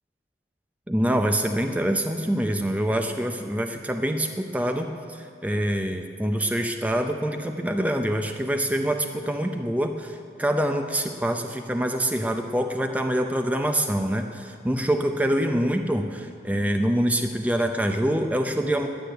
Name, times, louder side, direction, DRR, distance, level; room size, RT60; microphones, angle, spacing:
voice 1, 0.9-18.9, equal, 10° right, 5 dB, 0.5 m, -25 dB
9.8 x 9.3 x 10.0 m, 2.3 s
head